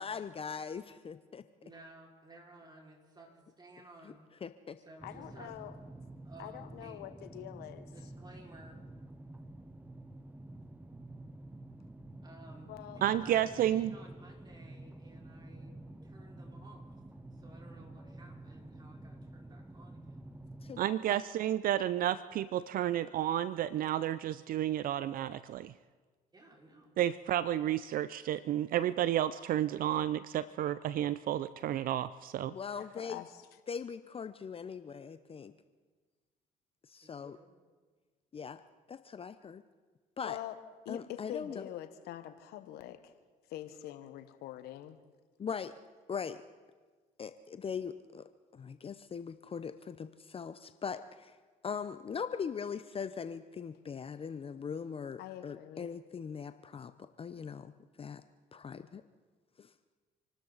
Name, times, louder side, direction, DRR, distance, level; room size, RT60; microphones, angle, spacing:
voice 1, 0.0-1.4 4.4-4.8 20.6-20.8 32.5-33.2 33.7-35.5 36.9-37.4 38.3-38.6 38.9-39.6 40.2-40.4 40.9-41.7 45.4-45.7 46.1-46.4 47.2-48.3 48.5-51.4 51.6-57.7 58.0-58.2 58.5-59.0 59.6-59.7, left 6 dB, 35° left, 11 dB, 0.7 m, -40 dB
voice 2, 1.6-4.3 4.8-5.5 6.2-7.1 7.9-8.8 12.2-12.7 12.9-15.8 16.0-16.9 17.3-20.2 26.3-27.0 37.0-37.5, right 1 dB, 25° right, -1 dB, 5.1 m, -55 dB
voice 3, 5.0-5.7 6.4-7.9 12.7-13.6 21.1-21.2 32.8-33.5 40.2-40.6 40.8-43.2 43.5-45.0 55.2-55.9, left 13 dB, 75° left, 10 dB, 1.2 m, -45 dB
sound 1, 5.0-20.8, right 1 dB, 10° right, 0.9 m, -49 dB
voice 4, 13.0-13.9 20.8-25.7 27.0-32.5, right 12 dB, 60° right, 16 dB, 0.5 m, -31 dB
27.5 x 12.5 x 4.0 m, 1.4 s
supercardioid pair, 70°, 17 cm